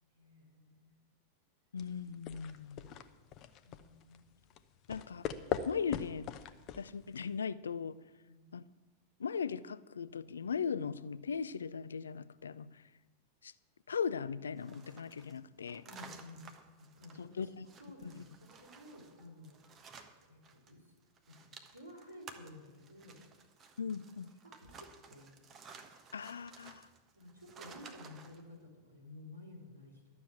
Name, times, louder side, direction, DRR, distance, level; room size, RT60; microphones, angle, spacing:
voice 1, 0.1-0.9 3.6-4.4 8.2-8.5 15.8-16.4 17.0-19.6 20.2-20.9 21.3-23.2 24.4-25.4 27.1-30.2, left 1 dB, 80° right, -2 dB, 3.6 m, -54 dB
voice 2, 1.7-2.9 4.9-5.3 5.7-6.3 6.8-8.0 8.5-8.6 9.2-12.8 13.4-13.5 13.9-15.8 17.2-17.7 18.1-18.2 23.8-24.3 26.1-26.9, left 6 dB, 70° left, 17 dB, 0.4 m, -38 dB
sound 1, 1.8-7.4, left 9 dB, 35° left, 0.7 m, -42 dB
sound 2, 14.6-20.7 21.0-28.4, right 5 dB, 30° right, 1.2 m, -55 dB
12.5 x 6.9 x 8.5 m, 1.2 s
figure-of-eight pair, 90°, 0 cm